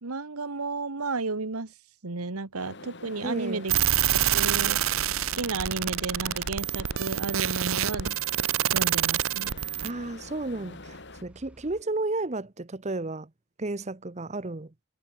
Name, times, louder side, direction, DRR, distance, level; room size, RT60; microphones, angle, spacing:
voice 1, 0.0-1.7 2.0-4.1 4.3-4.8 5.2-8.1 8.7-9.5, right 3 dB, 90° right, 1.4 m, -33 dB
sound 1, 2.6-11.2, left 2 dB, 55° left, 5.2 m, -45 dB
voice 2, 3.2-3.7 9.8-13.3 13.6-14.7, right 2 dB, 30° right, 0.9 m, -33 dB
sound 2, 3.7-9.9, right 11 dB, 70° right, 0.9 m, -26 dB
sound 3, 3.8-11.8, equal, 5° right, 5.4 m, -54 dB
head